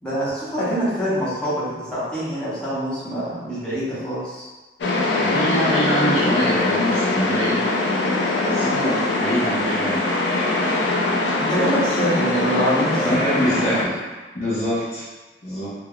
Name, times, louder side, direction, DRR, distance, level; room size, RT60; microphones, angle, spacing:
voice 1, 0.0-4.5 11.4-13.8, equal, 5° left, -11 dB, 0.8 m, -25 dB
sound 1, 4.8-13.8, left 2 dB, 85° left, 0.4 m, -22 dB
voice 2, 5.2-7.6 8.4-10.0 13.0-14.0 14.3-15.1 15.4-15.7, equal, 40° left, -9 dB, 0.5 m, -24 dB
2.3 x 2.1 x 3.5 m, 1.2 s
head